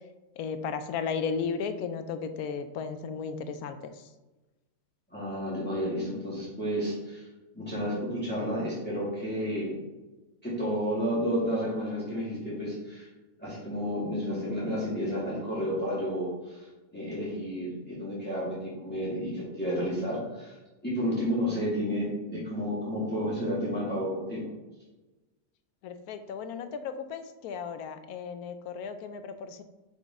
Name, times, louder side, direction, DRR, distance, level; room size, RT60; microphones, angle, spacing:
voice 1, 0.4-4.1 25.8-29.6, left 6 dB, 85° left, 9 dB, 1.1 m, -35 dB
voice 2, 5.1-7.3 7.5-9.7 10.4-13.1 13.4-16.7 16.9-20.5 20.8-24.5, equal, 5° left, -9 dB, 2.1 m, -31 dB
5.9 x 5.3 x 3.6 m, 1.1 s
omnidirectional pair, 1.6 m